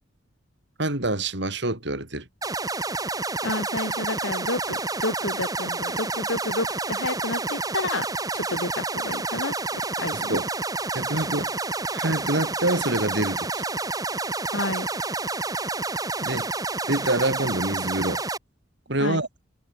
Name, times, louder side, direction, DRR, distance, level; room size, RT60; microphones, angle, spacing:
voice 1, 0.8-2.3 10.1-10.5 10.9-11.5 11.9-13.6 16.2-16.5 16.9-18.2 18.9-19.3, right 2 dB, 65° right, 4.8 m, -26 dB
sound 1, 2.4-18.4, right 3 dB, 20° right, 2.9 m, -29 dB
voice 2, 3.4-8.1 8.3-10.4 14.5-14.9 19.0-19.2, left 2 dB, 85° left, 4.7 m, -30 dB
head